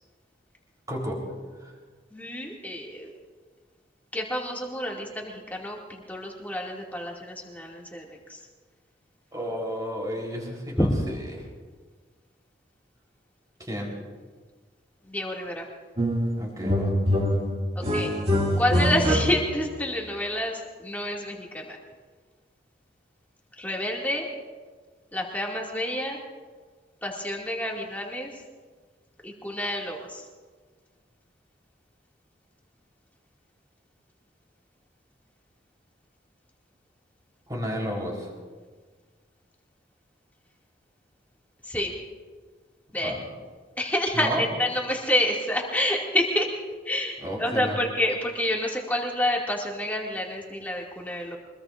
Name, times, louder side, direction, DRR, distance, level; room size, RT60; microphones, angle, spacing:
voice 1, 0.9-1.2 1.6-1.7 9.3-11.4 13.6-13.9 16.4-16.9 37.5-38.3 42.9-43.2 44.1-44.4 47.2-47.8, equal, 20° right, -1 dB, 3.9 m, -32 dB
voice 2, 2.1-3.1 4.1-8.4 10.8-10.9 15.1-15.6 17.8-18.1 18.6-21.8 23.6-24.3 25.1-26.2 27.0-28.3 29.2-30.2 41.7-41.9 42.9-43.1 43.8-46.6 46.9-51.4, left 1 dB, 10° left, -2 dB, 2.4 m, -28 dB
sound 1, 16.0-16.3 16.6-19.7, equal, 35° right, 2.3 m, -24 dB
24.5 x 21.5 x 2.6 m, 1.5 s
head